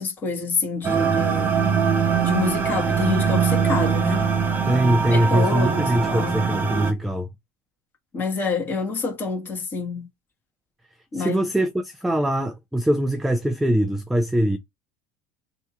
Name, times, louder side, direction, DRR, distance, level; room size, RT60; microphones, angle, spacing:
voice 1, 0.0-1.7 2.2-4.3 5.0-6.4 8.1-10.1 11.1-11.4, left 4 dB, 20° left, 1.7 m, -27 dB
sound 1, 0.8-6.9, right 6 dB, 20° right, 0.8 m, -22 dB
voice 2, 4.7-7.3 11.1-14.6, right 1 dB, ahead, 0.3 m, -22 dB
3.5 x 2.8 x 4.1 m
cardioid pair, 160°, 9 cm